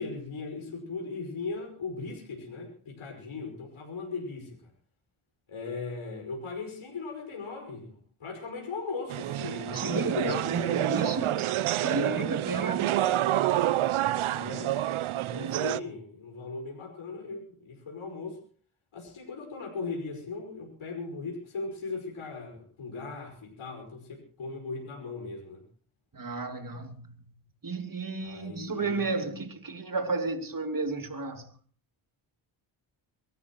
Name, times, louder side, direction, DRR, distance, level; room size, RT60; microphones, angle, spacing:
voice 1, 0.0-4.7 5.5-10.8 14.2-14.8 15.1-18.4 18.9-25.6 28.2-29.2, left 4 dB, 75° left, 5.4 m, -38 dB
sound 1, 9.1-15.8, right 13 dB, 75° right, 0.8 m, -28 dB
voice 2, 9.7-11.5 11.8-13.0 26.1-27.3 27.6-31.5, right 3 dB, 40° right, 2.9 m, -32 dB
24.0 x 13.5 x 3.1 m
supercardioid pair, 45°, 49 cm